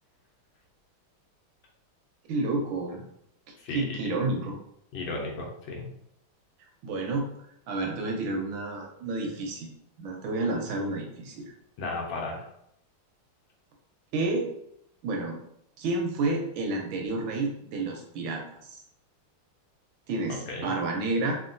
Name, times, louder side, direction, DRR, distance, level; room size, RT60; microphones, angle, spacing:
voice 1, 2.3-3.0 3.7-4.6 6.8-7.3 7.7-9.7 10.0-11.4 14.1-14.5 15.0-15.4 15.8-18.8 20.1-21.4, right 2 dB, 80° right, 1 dB, 1.3 m, -30 dB
voice 2, 4.9-5.9 11.8-12.5 20.3-20.7, left 3 dB, 75° left, -1 dB, 1.4 m, -34 dB
3.6 x 2.2 x 2.5 m, 0.73 s
omnidirectional pair, 2.3 m